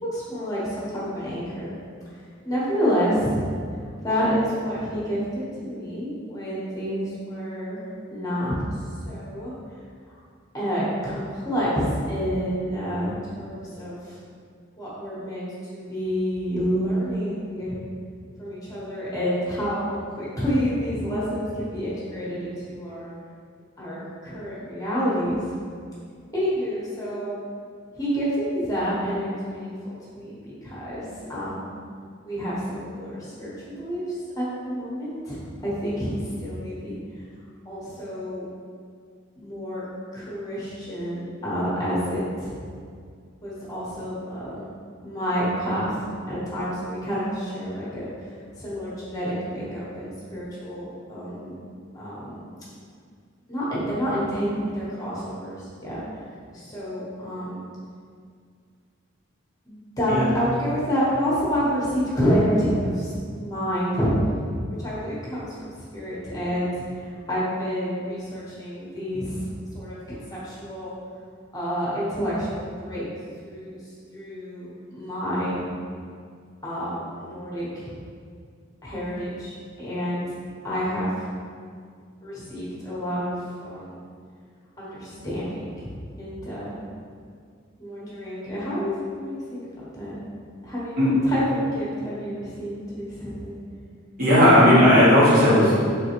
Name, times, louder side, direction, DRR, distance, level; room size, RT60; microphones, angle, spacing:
voice 1, 0.0-1.7 2.4-3.4 4.0-7.8 8.1-8.5 9.0-9.5 10.1-10.2 10.5-14.2 14.8-15.4 15.7-17.8 18.4-23.1 23.8-25.4 26.3-27.4 28.0-31.7 32.2-36.9 37.6-38.5 39.4-39.8 40.1-42.6 43.4-44.7 45.0-46.0 46.3-51.5 51.9-52.4 53.5-56.0 56.5-57.6 59.6-64.1 64.7-69.5 69.7-70.9 71.5-73.0 73.4-75.6 76.6-77.9 78.8-80.2 80.6-81.1 82.2-84.0 84.8-85.9 86.2-86.8 87.8-90.1 90.6-93.6, equal, 20° left, -8 dB, 1.0 m, -28 dB
voice 2, 94.2-95.8, equal, 45° right, -9 dB, 1.2 m, -15 dB
3.7 x 3.3 x 3.0 m, 2.2 s
head